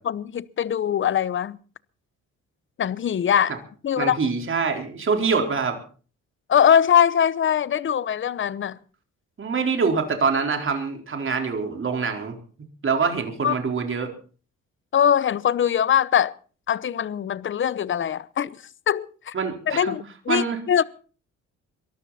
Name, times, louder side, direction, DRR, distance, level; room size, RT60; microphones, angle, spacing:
voice 1, 0.0-1.6 2.8-3.6 3.8-4.2 6.5-8.8 13.4-13.5 14.9-16.3 16.7-18.5 18.9-19.3 19.7-20.8, left 9 dB, 40° left, 0.8 m, -22 dB
voice 2, 4.0-5.8 9.4-12.4 12.8-14.1 19.3-19.9 20.3-20.6, right 5 dB, 40° right, 4.3 m, -25 dB
22.5 x 13.5 x 4.2 m
cardioid pair, 90°, 30 cm